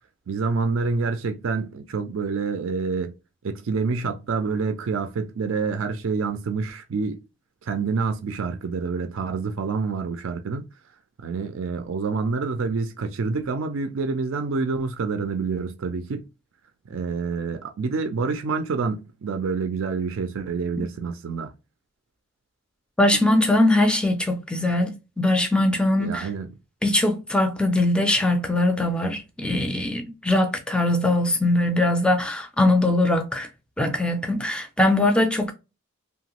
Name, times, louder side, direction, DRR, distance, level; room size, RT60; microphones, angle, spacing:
voice 1, 0.3-3.1 3.4-7.2 7.6-10.7 11.2-16.2 16.9-21.5 26.0-26.5, right 4 dB, 70° right, 0.4 m, -27 dB
voice 2, 23.0-26.3 26.8-33.5 33.8-35.5, left 1 dB, 5° left, 0.4 m, -21 dB
2.9 x 2.2 x 2.9 m
head